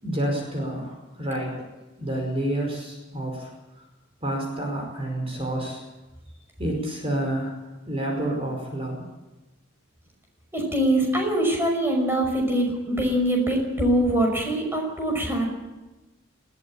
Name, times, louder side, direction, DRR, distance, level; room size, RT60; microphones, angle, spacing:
voice 1, 0.0-1.6 2.0-3.8 4.2-5.8 6.6-7.5 7.9-9.0, right 1 dB, 30° right, 1 dB, 5.0 m, -29 dB
voice 2, 10.5-15.5, right 1 dB, 10° right, 1 dB, 5.7 m, -23 dB
20.5 x 18.0 x 8.7 m, 1.1 s
head